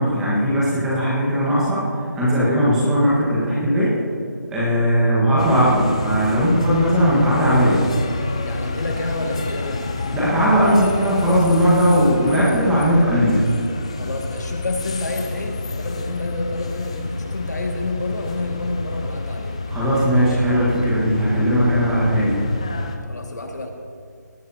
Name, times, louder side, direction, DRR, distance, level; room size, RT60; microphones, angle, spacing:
voice 1, 0.0-1.9 2.1-3.9 4.5-7.8 10.1-13.5 19.7-22.4, equal, 5° right, -8 dB, 1.3 m, -18 dB
sound 1, 5.4-23.0, left 3 dB, 20° left, 0.5 m, -29 dB
voice 2, 8.4-9.8 14.0-19.6 23.1-23.7, left 2 dB, 65° left, 3 dB, 1.8 m, -29 dB
18.5 x 13.5 x 2.7 m, 2.2 s
figure-of-eight pair, 175°, 10 cm